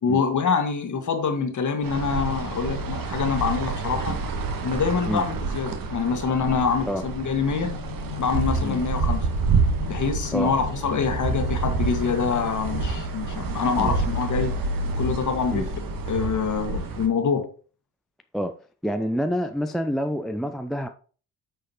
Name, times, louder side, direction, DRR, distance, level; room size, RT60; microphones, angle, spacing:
voice 1, 0.0-4.2 4.6-7.8 8.2-9.3 9.9-14.6 15.0-15.7 16.1-17.5, left 5 dB, 40° left, 1.6 m, -25 dB
sound 1, 1.8-17.1, right 4 dB, 45° right, 1.4 m, -28 dB
sound 2, 7.6-13.0, left 18 dB, 55° left, 0.8 m, -38 dB
voice 2, 18.8-20.9, equal, ahead, 0.4 m, -27 dB
9.1 x 6.3 x 3.0 m
figure-of-eight pair, 45°, 47 cm